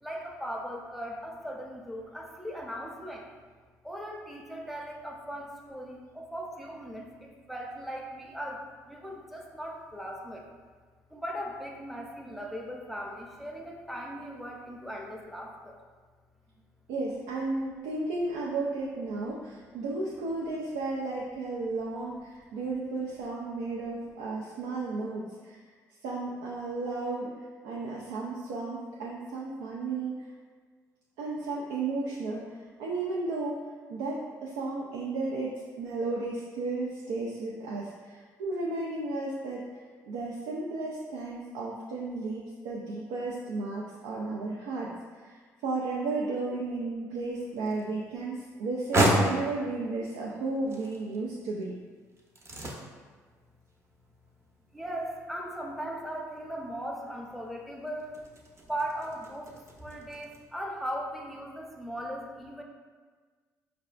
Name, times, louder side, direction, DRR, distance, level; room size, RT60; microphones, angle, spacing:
voice 1, 0.0-3.3 3.8-10.5 11.1-15.8 54.7-58.2 58.6-62.6, equal, ahead, -1 dB, 0.6 m, -38 dB
voice 2, 16.9-25.6 26.0-27.3 27.6-30.1 31.2-32.5 32.8-33.6 33.9-39.8 40.1-44.9 45.2-51.7, right 3 dB, 80° right, -4 dB, 0.4 m, -33 dB
sound 1, 47.2-60.4, right 1 dB, 35° right, 0.7 m, -35 dB
4.7 x 2.3 x 2.4 m, 1.5 s
hypercardioid pair, 55°, 8 cm